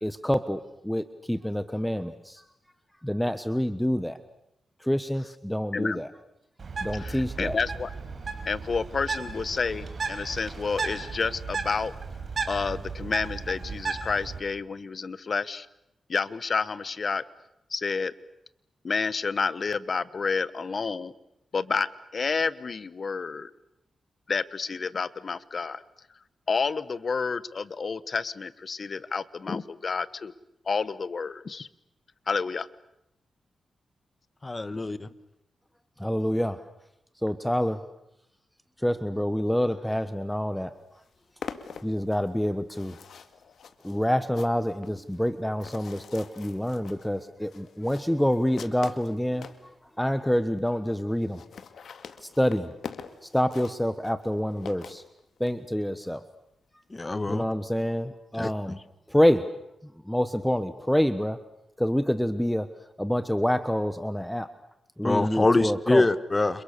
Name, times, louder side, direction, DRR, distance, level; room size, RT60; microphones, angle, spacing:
voice 1, 0.0-2.4 3.0-4.2 4.8-6.1 6.8-7.6 36.0-36.6 37.2-37.9 38.8-40.8 41.8-43.0 43.8-49.5 50.0-51.4 52.2-52.7 53.2-55.0 55.4-56.2 57.3-58.8 59.1-59.5 60.0-61.4 61.8-62.7 63.0-64.5 65.0-66.1, equal, 5° left, 11 dB, 1.2 m, -27 dB
Bird, 6.6-14.4, right 4 dB, 50° right, 4.9 m, -35 dB
voice 2, 6.9-7.9 8.4-11.9 12.5-15.7 16.1-17.2 17.7-18.1 18.8-21.1 21.5-23.5 24.3-25.8 26.5-30.3 30.7-31.7 32.3-32.7, left 5 dB, 50° left, 16 dB, 1.3 m, -30 dB
voice 3, 34.4-35.1 56.9-57.4 58.4-58.7 65.0-66.6, left 2 dB, 25° left, 13 dB, 1.5 m, -24 dB
sound 1, 40.4-40.5 40.8-49.6 50.2-50.3 50.5-50.6 50.8-50.9 51.2-55.6, left 6 dB, 75° left, 2.1 m, -44 dB
30.0 x 28.0 x 6.8 m, 0.83 s
cardioid pair, 90°, 0 cm